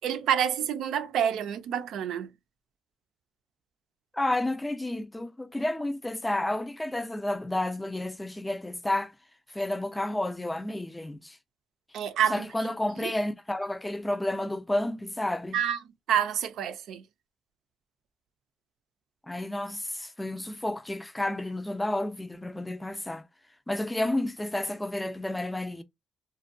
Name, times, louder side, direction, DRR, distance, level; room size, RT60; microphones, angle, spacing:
voice 1, 0.0-2.3 11.9-12.5 13.0-13.1 15.5-15.8 16.1-17.0, right 9 dB, 80° right, 0.4 m, -28 dB
voice 2, 4.1-9.1 9.5-11.4 12.3-15.6 19.3-23.2 23.7-25.8, left 1 dB, 10° left, 0.4 m, -31 dB
2.6 x 2.2 x 2.5 m
cardioid pair, 90°, 0 cm